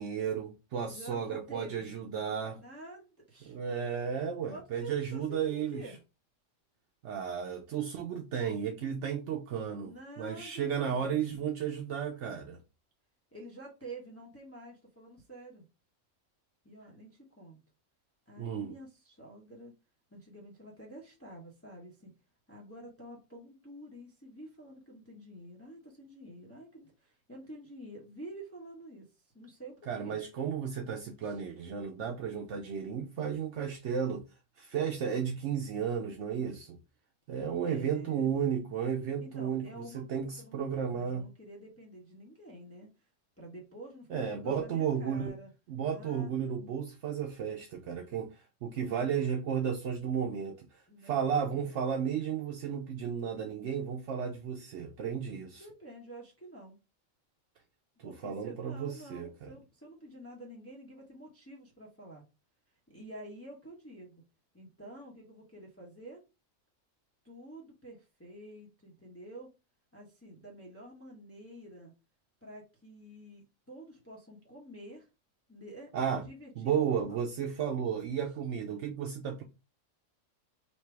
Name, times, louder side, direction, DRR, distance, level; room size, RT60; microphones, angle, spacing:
voice 1, 0.0-2.6 3.4-5.8 7.0-12.6 18.4-18.7 29.9-34.2 34.6-36.8 37.3-41.2 44.1-45.3 45.7-55.7 58.0-59.5 75.9-76.2 76.6-79.4, right 7 dB, 70° right, 0.9 m, -33 dB
voice 2, 0.9-1.9 2.5-3.6 4.5-6.0 9.8-11.3 13.3-15.7 16.6-17.6 18.3-19.7 20.1-22.1 22.5-30.2 31.2-31.4 37.6-38.4 39.2-40.6 40.9-43.1 43.4-45.5 45.9-46.3 50.9-51.7 55.6-56.8 58.0-62.2 62.9-64.2 64.5-66.2 67.2-69.5 69.9-71.9 72.4-75.1 75.5-77.2 78.6-79.0, right 1 dB, 10° left, 1.0 m, -49 dB
3.3 x 2.8 x 4.5 m
omnidirectional pair, 1.3 m